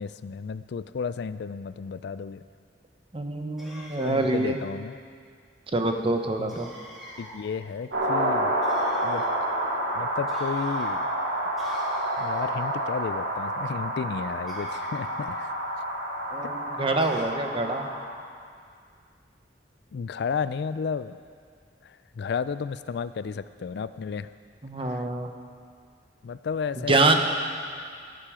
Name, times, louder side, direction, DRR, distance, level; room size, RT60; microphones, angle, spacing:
voice 1, 0.0-2.4 3.9-5.0 6.4-6.5 7.2-8.6 9.0-9.3 9.9-11.1 12.2-15.5 16.4-16.5 19.9-21.2 21.8-24.3 24.9-25.0 26.2-27.2, left 6 dB, 65° left, 14 dB, 0.4 m, -33 dB
voice 2, 3.1-4.6 5.7-6.7 16.3-17.9 24.6-25.3 26.8-27.2, right 2 dB, 30° right, 5 dB, 1.0 m, -25 dB
sound 1, 3.6-4.6 6.5-7.4 8.6-9.4 10.3-10.9 11.6-12.5 14.5-15.3 17.0-17.2, equal, ahead, 2.9 m, -44 dB
sound 2, 7.9-18.1, right 1 dB, 85° right, 3.0 m, -29 dB
16.0 x 10.5 x 5.0 m, 2.2 s
head